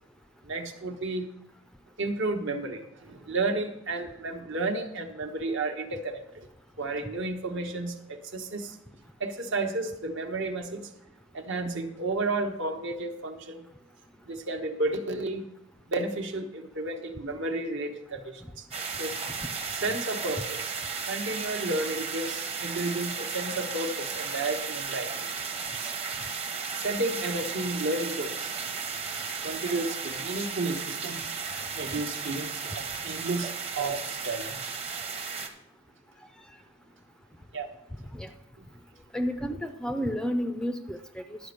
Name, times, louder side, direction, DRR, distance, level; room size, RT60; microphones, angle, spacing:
voice 1, 0.4-1.3 2.0-6.5 6.8-8.8 9.2-10.9 11.3-13.7 14.3-15.4 15.9-18.6 19.0-19.2 19.8-20.7 21.1-25.1 25.8-25.9 26.7-28.5 29.4-31.2 31.7-34.7 37.5-37.7, right 2 dB, 60° right, 5 dB, 1.1 m, -32 dB
sound 1, 18.7-35.5, right 5 dB, 30° right, 0.9 m, -34 dB
voice 2, 39.1-41.4, equal, 5° left, 8 dB, 0.4 m, -31 dB
11.5 x 5.1 x 6.6 m, 0.84 s
head